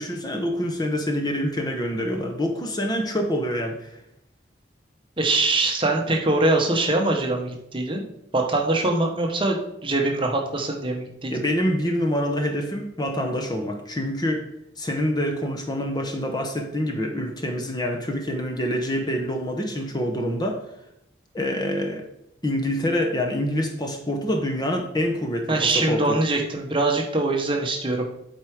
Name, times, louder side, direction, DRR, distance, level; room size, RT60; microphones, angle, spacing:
voice 1, 0.0-4.0 11.3-14.4 14.8-20.6 21.3-22.0 22.4-26.2, equal, 20° left, 3 dB, 0.8 m, -26 dB
voice 2, 5.2-8.0 8.3-11.3 25.5-28.0, right 2 dB, 25° right, 2 dB, 1.0 m, -23 dB
8.2 x 4.5 x 4.7 m, 0.81 s
head